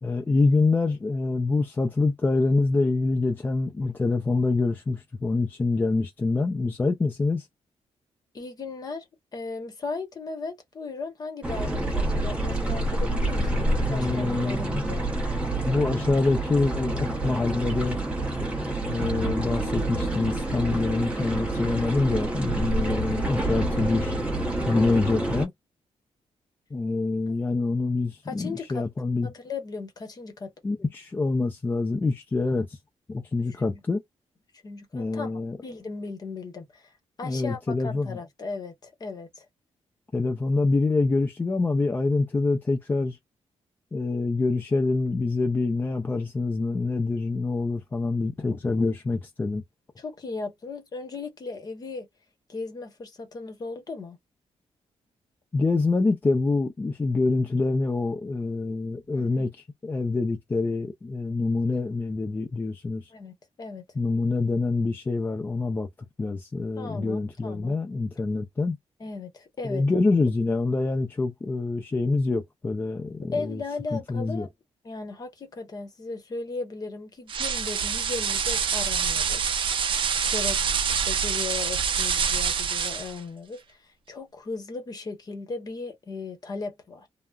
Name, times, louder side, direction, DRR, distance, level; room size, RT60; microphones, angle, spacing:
voice 1, 0.0-7.5 13.9-14.9 15.7-18.0 18.9-24.1 24.7-25.5 26.7-29.3 30.6-32.8 33.1-34.0 34.9-35.6 37.2-38.2 40.1-43.2 43.9-49.6 55.5-63.1 64.0-68.8 69.6-73.6 73.9-74.5, left 3 dB, 20° left, 0.4 m, -26 dB
voice 2, 8.3-9.1 9.3-15.1 24.7-25.0 28.3-28.8 29.2-30.5 33.4-33.8 34.5-35.3 35.6-36.9 37.2-39.5 50.0-52.1 52.5-54.2 59.1-59.5 63.1-63.8 66.8-67.8 69.0-69.8 73.2-74.5 74.8-87.1, left 4 dB, 35° left, 0.8 m, -37 dB
sound 1, 11.4-25.4, right 1 dB, 10° right, 0.7 m, -28 dB
sound 2, 77.3-83.2, right 6 dB, 50° right, 0.4 m, -26 dB
3.3 x 2.0 x 2.3 m
wide cardioid pair, 175°, 11 cm